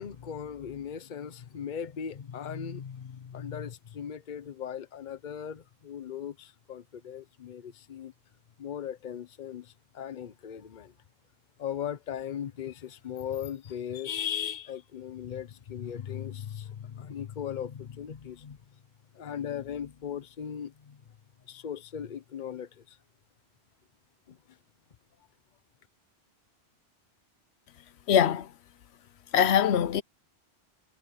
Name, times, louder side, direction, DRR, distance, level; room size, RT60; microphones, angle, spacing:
voice 1, 0.0-8.1 8.6-9.7 9.9-10.9 11.6-18.6 19.2-21.0 21.5-22.7, left 8 dB, 50° left, 0.9 m, -38 dB
voice 2, 28.1-28.5 29.3-30.0, left 9 dB, 80° left, 1.0 m, -22 dB
omnidirectional pair, 1.1 m